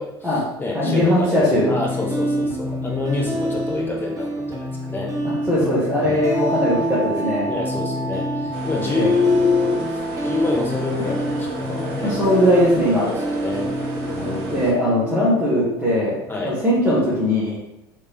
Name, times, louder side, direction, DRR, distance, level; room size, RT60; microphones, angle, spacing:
voice 1, 0.0-5.2 5.6-6.4 7.4-12.2 13.0-13.7 14.0-14.8 16.3-16.6, left 3 dB, 15° left, -1 dB, 0.9 m, -26 dB
voice 2, 0.7-1.7 5.5-7.4 8.9-9.1 12.0-13.1 14.2-16.2 16.4-17.6, equal, 5° right, -9 dB, 1.3 m, -19 dB
sound 1, 1.5-16.5, equal, 25° right, 0.7 m, -28 dB
sound 2, 6.3-16.1, right 3 dB, 75° left, 1.5 m, -36 dB
sound 3, 8.5-14.7, right 2 dB, 65° right, 1.0 m, -34 dB
3.3 x 3.2 x 2.9 m, 0.89 s
figure-of-eight pair, 70°, 14 cm